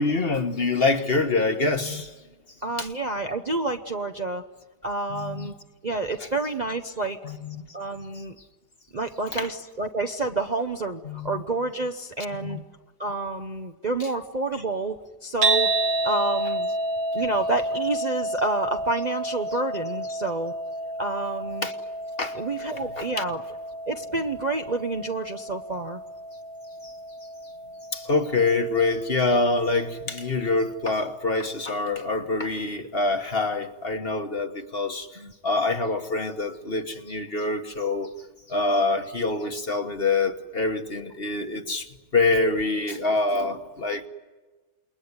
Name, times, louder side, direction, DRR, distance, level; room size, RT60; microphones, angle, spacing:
voice 1, 0.0-2.1 2.8-2.9 5.1-5.5 7.2-7.6 9.4-9.5 11.0-11.4 12.4-12.6 21.6-21.7 22.2-22.4 23.0-23.3 26.8-26.9 27.9-38.1 38.5-41.9 42.1-44.1, left 3 dB, 35° left, 1.5 m, -25 dB
voice 2, 2.6-4.4 4.8-5.5 5.8-7.2 7.7-8.4 8.9-12.6 13.0-15.7 16.0-16.7 17.1-20.5 21.0-21.7 22.3-23.4 23.9-26.0 35.2-35.3, right 2 dB, 35° right, 0.8 m, -29 dB
sound 1, 15.4-31.6, right 1 dB, 60° right, 2.1 m, -31 dB
28.5 x 21.5 x 9.7 m
omnidirectional pair, 1.7 m